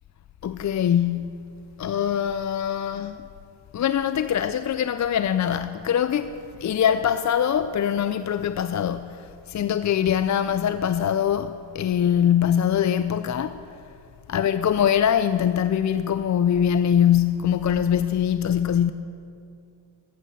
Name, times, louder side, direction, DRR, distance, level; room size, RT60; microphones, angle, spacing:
voice 1, 0.4-1.4 1.8-3.2 3.7-13.6 14.3-18.9, left 9 dB, 40° left, 0.4 m, -23 dB
14.5 x 8.3 x 5.6 m
supercardioid pair, 55°, 49 cm